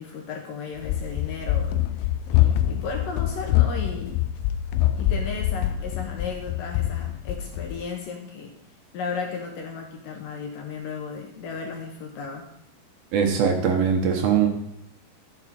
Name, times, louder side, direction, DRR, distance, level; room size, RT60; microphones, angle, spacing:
voice 1, 0.0-4.2 5.0-8.5 8.9-12.5, left 5 dB, 70° left, 1 dB, 2.3 m, -35 dB
Run, 0.8-7.8, left 13 dB, 90° left, 2.1 m, -25 dB
voice 2, 13.1-14.5, right 7 dB, 70° right, 4 dB, 2.5 m, -21 dB
12.5 x 7.3 x 4.2 m, 0.76 s
omnidirectional pair, 4.8 m